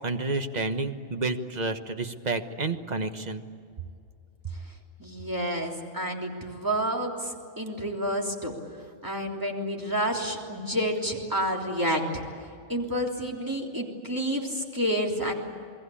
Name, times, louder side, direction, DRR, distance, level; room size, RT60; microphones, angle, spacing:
voice 1, 0.0-3.4, right 3 dB, 35° right, 7 dB, 1.3 m, -30 dB
voice 2, 5.0-8.5 9.0-12.2 12.7-15.3, equal, 15° right, 0 dB, 3.3 m, -29 dB
29.0 x 21.0 x 8.5 m, 2.4 s
omnidirectional pair, 1.3 m